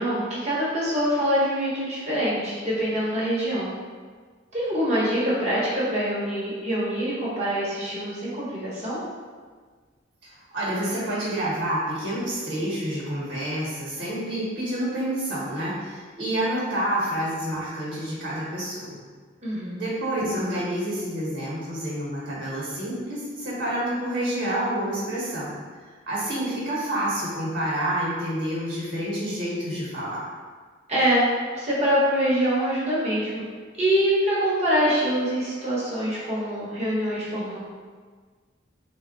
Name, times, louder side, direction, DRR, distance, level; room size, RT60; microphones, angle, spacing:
voice 1, 0.0-3.7 4.5-9.0 19.4-19.8 30.9-31.3 31.5-33.4 33.8-37.6, equal, 35° right, -8 dB, 1.0 m, -24 dB
voice 2, 10.2-19.0 19.7-25.5 26.1-30.3, right 1 dB, 60° right, -6 dB, 1.1 m, -28 dB
3.4 x 2.2 x 3.9 m, 1.5 s
head